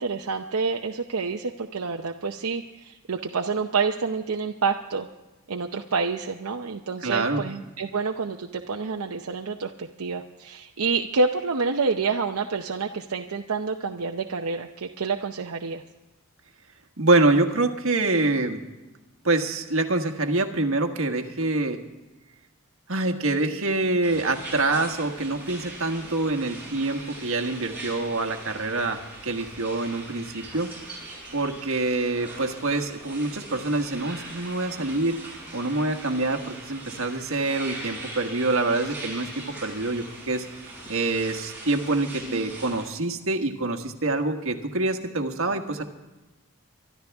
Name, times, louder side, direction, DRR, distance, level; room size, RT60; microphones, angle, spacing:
voice 1, 0.0-5.1 5.5-15.8, right 4 dB, 85° right, 3 dB, 0.7 m, -28 dB
voice 2, 7.0-7.4 17.0-18.6 19.2-21.8 22.9-30.7 31.3-40.5 40.9-45.8, right 2 dB, 65° right, 5 dB, 1.5 m, -26 dB
sound 1, 24.0-42.8, right 2 dB, 10° right, 6.6 m, -41 dB
24.0 x 12.5 x 3.5 m, 1.1 s
head